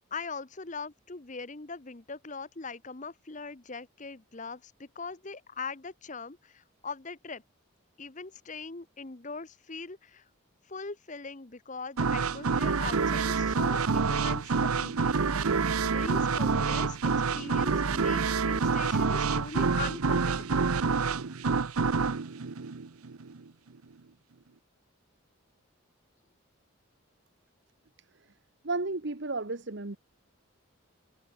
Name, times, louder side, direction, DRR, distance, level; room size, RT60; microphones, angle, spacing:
voice 1, 0.1-7.4 8.0-10.2 10.7-15.5 15.8-17.0 17.3-20.7, left 4 dB, 35° left, 1.0 m, -41 dB
sound 1, 12.0-23.4, right 4 dB, 80° right, 0.8 m, -27 dB
voice 2, 28.6-30.0, right 3 dB, 55° right, 1.2 m, -33 dB
head